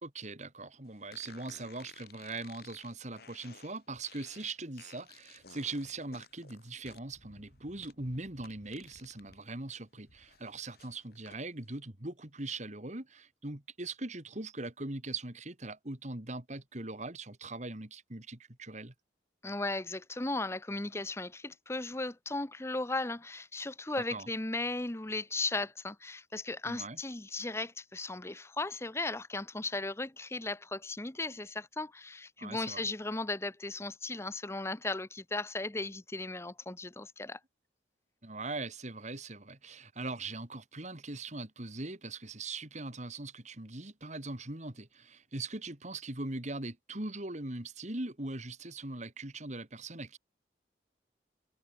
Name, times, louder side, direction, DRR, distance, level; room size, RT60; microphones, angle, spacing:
voice 1, 0.0-18.9 24.1-24.3 26.6-27.0 32.4-32.9 38.2-50.2, right 2 dB, 40° right, 2.5 m, -41 dB
sound 1, 1.1-9.4 9.8-11.4, left 5 dB, 60° left, 5.4 m, -56 dB
voice 2, 19.4-37.4, left 2 dB, 15° left, 0.8 m, -36 dB
head